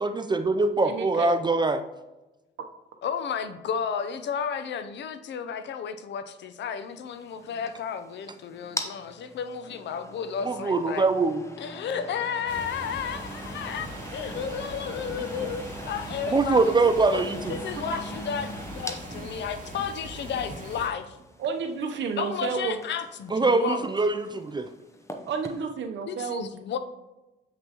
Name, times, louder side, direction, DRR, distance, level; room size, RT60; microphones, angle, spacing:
voice 1, 0.0-1.8 10.4-11.4 16.3-17.6 23.3-24.7, right 3 dB, 20° right, 8 dB, 0.4 m, -23 dB
voice 2, 0.8-1.4 17.9-18.0 21.4-22.8 25.3-26.5, right 5 dB, 65° right, 6 dB, 0.8 m, -31 dB
voice 3, 3.0-11.1 11.6-16.7 17.1-17.2 17.5-21.2 22.2-23.9 26.1-26.8, left 7 dB, 65° left, 11 dB, 0.6 m, -33 dB
sound 1, 6.9-25.6, left 1 dB, 15° left, 0.8 m, -43 dB
sound 2, 12.5-20.9, right 1 dB, 40° right, 1.9 m, -40 dB
7.7 x 5.3 x 2.9 m, 1.0 s
cardioid pair, 90°, 20 cm